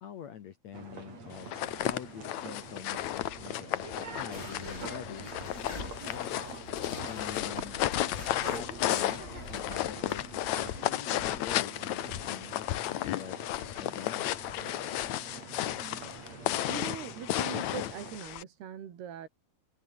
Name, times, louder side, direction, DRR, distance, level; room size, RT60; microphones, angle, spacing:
voice 1, 0.0-5.3 5.7-6.5 7.0-7.8 8.5-13.4 13.8-14.3, left 9 dB, 60° left, 2.0 m, -45 dB
sound 1, 0.7-18.2, right 4 dB, 40° right, 6.2 m, -46 dB
sound 2, 1.4-18.4, left 14 dB, 75° left, 1.6 m, -33 dB
sound 3, 4.3-10.9, left 2 dB, 15° left, 4.5 m, -45 dB
voice 2, 16.7-19.3, right 9 dB, 80° right, 4.8 m, -42 dB
omnidirectional pair, 4.5 m